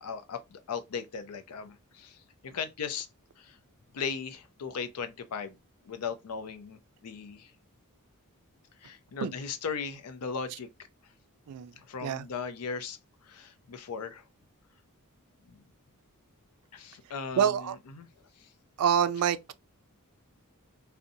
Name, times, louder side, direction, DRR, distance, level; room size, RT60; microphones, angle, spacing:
voice 1, 0.0-3.1 3.4-3.6 3.9-5.6 5.8-7.5 8.8-10.7 11.8-14.3 15.5-15.7 16.7-18.1 18.4-18.5, left 6 dB, 85° left, 0.5 m, -38 dB
voice 2, 17.4-17.8 18.8-19.5, right 8 dB, 85° right, 0.3 m, -26 dB
2.7 x 2.1 x 2.5 m
head